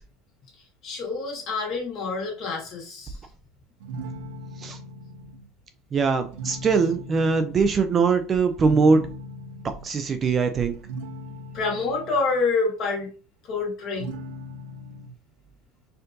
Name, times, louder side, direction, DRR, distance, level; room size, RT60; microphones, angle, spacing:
voice 1, 0.6-3.2 7.8-8.0 8.7-8.8 9.8-9.9 10.2-10.4 11.3-13.1 13.4-14.1, left 4 dB, 40° left, 1.6 m, -28 dB
sound 1, 3.8-5.5 6.2-7.6 8.6-9.9 10.7-12.2 14.0-15.1, right 1 dB, 80° right, 0.7 m, -38 dB
voice 2, 5.9-9.0 9.6-10.7, right 4 dB, 25° right, 0.3 m, -21 dB
4.3 x 2.6 x 2.6 m
cardioid pair, 155°, 0 cm